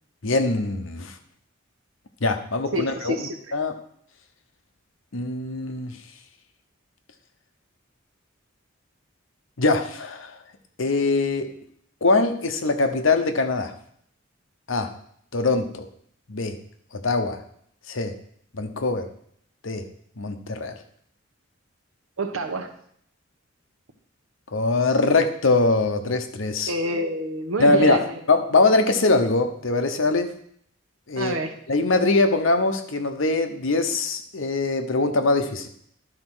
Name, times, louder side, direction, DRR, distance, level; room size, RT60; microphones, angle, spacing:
voice 1, 0.2-1.1 2.2-3.7 5.1-5.9 9.6-10.4 10.8-11.5 12.0-13.7 14.7-14.9 15.3-15.9 16.3-16.6 16.9-17.4 17.9-18.1 18.5-19.1 19.6-19.8 20.2-20.8 24.5-26.7 27.6-28.0 28.3-30.3 31.1-31.3 31.7-35.7, left 3 dB, 70° left, 7 dB, 0.9 m, -22 dB
voice 2, 2.7-3.4 22.2-22.7 26.7-28.2 31.2-31.6, right 1 dB, 85° right, 6 dB, 1.1 m, -27 dB
11.0 x 4.3 x 6.2 m, 0.66 s
head